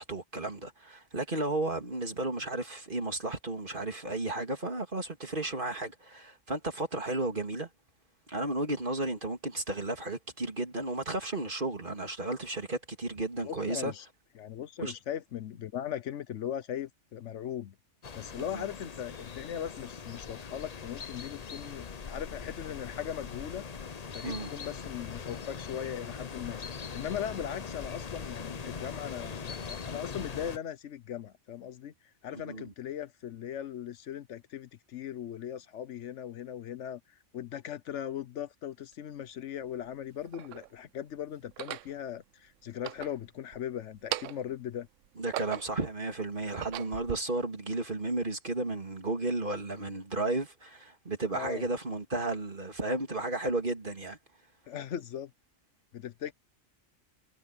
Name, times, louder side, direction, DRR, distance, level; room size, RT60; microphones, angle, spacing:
voice 1, 0.0-7.7 8.3-13.9 14.8-14.9 18.4-18.6 24.2-24.5 32.3-32.7 45.2-54.2, right 2 dB, 40° right, 3.0 m, -33 dB
voice 2, 13.4-14.1 14.4-17.7 18.1-23.6 24.1-26.6 26.9-31.9 32.2-37.0 37.3-44.9 51.3-51.6 54.7-55.3 55.9-56.3, left 9 dB, 70° left, 1.0 m, -39 dB
sound 1, 18.0-30.6, left 5 dB, 35° left, 0.8 m, -41 dB
sound 2, 38.9-39.0 39.9-40.7 41.4-41.9 42.7-43.6 43.9-44.6 45.0-45.9 46.4-47.2, right 12 dB, 85° right, 0.9 m, -39 dB
omnidirectional pair, 1.3 m